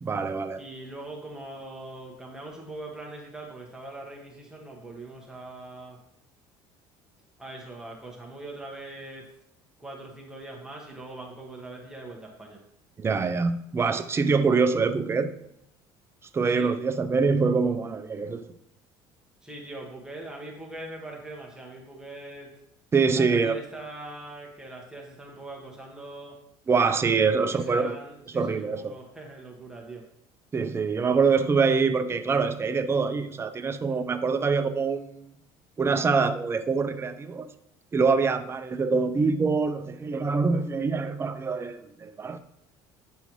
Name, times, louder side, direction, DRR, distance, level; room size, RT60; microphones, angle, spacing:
voice 1, 0.0-0.6 13.0-15.3 16.3-18.4 22.9-23.6 26.7-28.0 28.3-28.9 30.5-35.3 35.8-37.5 37.9-42.4, right 4 dB, 25° right, 8 dB, 0.6 m, -25 dB
voice 2, 0.5-6.0 7.4-9.3 9.8-12.6 16.5-16.7 19.4-22.5 23.1-26.4 27.2-30.1, right 2 dB, 5° right, -2 dB, 1.2 m, -41 dB
9.3 x 5.6 x 3.0 m, 0.80 s
supercardioid pair, 105°, 11 cm